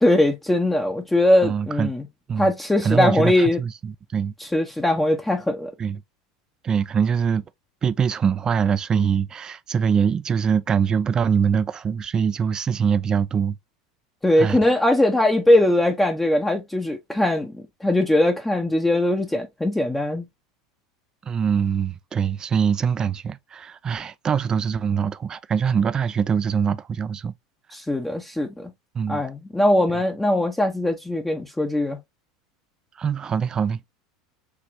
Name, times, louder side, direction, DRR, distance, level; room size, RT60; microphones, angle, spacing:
voice 1, 0.0-2.1 2.4-3.6 4.4-5.7 14.2-20.3 27.7-28.7 29.1-32.0, left 1 dB, 10° left, 0.8 m, -21 dB
voice 2, 1.4-1.9 2.3-2.5 2.8-4.3 5.8-6.0 6.6-7.4 7.8-13.6 14.4-14.6 21.3-27.3 28.9-29.2 33.0-33.9, right 7 dB, 30° right, 0.4 m, -23 dB
4.8 x 2.9 x 2.6 m
hypercardioid pair, 85°, 3 cm